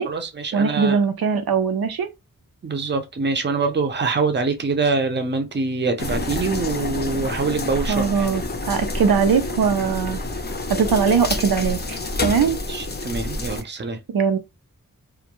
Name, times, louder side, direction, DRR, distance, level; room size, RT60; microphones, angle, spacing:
voice 1, 0.0-1.0 2.6-8.3 12.7-14.0, right 4 dB, 30° right, 0.5 m, -24 dB
voice 2, 0.5-2.1 7.9-8.4 8.7-10.2 10.8-12.6 14.1-14.4, right 6 dB, 90° right, 0.5 m, -20 dB
sound 1, 6.0-13.6, left 2 dB, 30° left, 0.5 m, -28 dB
2.2 x 2.1 x 2.9 m
wide cardioid pair, 80°, 36 cm